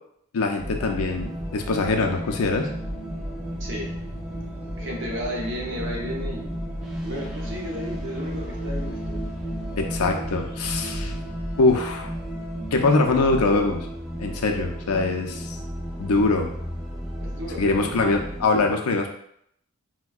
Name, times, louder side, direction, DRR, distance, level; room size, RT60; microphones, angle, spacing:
voice 1, 0.3-2.7 9.8-11.1 11.6-12.1 12.7-13.9 14.2-15.6 16.0-16.5 17.6-19.1, left 3 dB, 80° left, 3 dB, 0.5 m, -23 dB
sound 1, 0.6-13.1, right 1 dB, 30° left, 0.7 m, -39 dB
sound 2, 0.6-18.5, equal, 5° right, 0.3 m, -34 dB
voice 2, 4.8-6.6 7.0-9.2 17.2-18.2, equal, 60° right, -1 dB, 0.7 m, -33 dB
4.3 x 2.1 x 2.3 m, 0.70 s
head